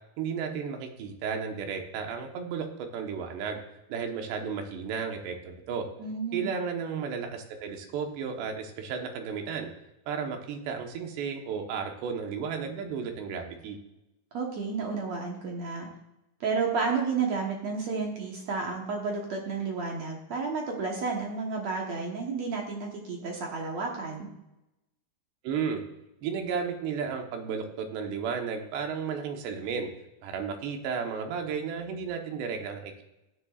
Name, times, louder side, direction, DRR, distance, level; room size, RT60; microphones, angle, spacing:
voice 1, 0.2-2.7 2.9-3.6 3.9-5.9 6.3-9.7 10.1-13.8 25.4-25.8 26.2-29.9 30.2-33.0, right 6 dB, 85° right, 3 dB, 3.4 m, -33 dB
voice 2, 6.0-6.5 14.3-15.9 16.4-24.3, right 4 dB, 65° right, -1 dB, 1.8 m, -31 dB
15.0 x 9.8 x 2.4 m, 0.92 s
omnidirectional pair, 4.8 m